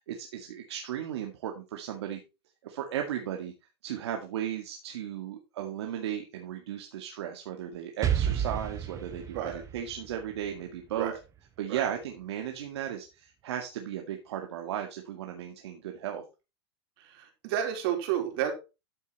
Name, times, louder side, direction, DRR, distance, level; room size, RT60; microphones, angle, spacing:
voice 1, 0.1-2.2 2.6-3.5 3.8-11.1 11.6-16.2, right 10 dB, 75° right, 3 dB, 2.1 m, -35 dB
Explosion, 8.0-11.8, right 9 dB, 20° right, 1.4 m, -32 dB
voice 2, 17.0-18.5, right 10 dB, 60° right, 4 dB, 4.2 m, -31 dB
13.5 x 5.5 x 4.3 m, 0.28 s
hypercardioid pair, 125°, 14 cm